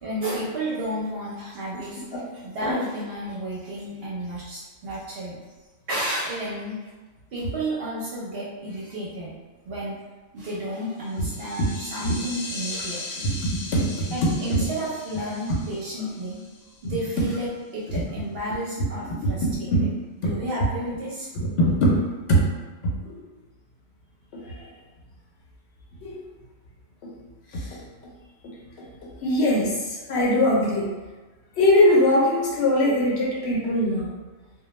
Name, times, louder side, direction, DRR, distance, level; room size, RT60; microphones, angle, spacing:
voice 1, 0.0-2.0 2.3-5.4 5.9-6.9 7.3-9.3 9.6-10.1 10.3-13.3 14.1-16.4 16.8-19.7 20.2-21.3, right 1 dB, 60° right, -6 dB, 0.7 m, -31 dB
sound 1, 11.0-17.1, left 2 dB, 85° left, 1.0 m, -38 dB
voice 2, 13.2-14.1 19.4-19.9 20.2-20.4 21.3-22.0 22.3-22.4 23.0-23.2 24.3-24.7 26.0-26.3 27.0-27.1 27.5-27.8 28.8-28.9 29.2-30.9 31.6-34.1, left 1 dB, 65° left, -4 dB, 0.7 m, -22 dB
2.2 x 2.1 x 3.0 m, 1.2 s
omnidirectional pair, 1.4 m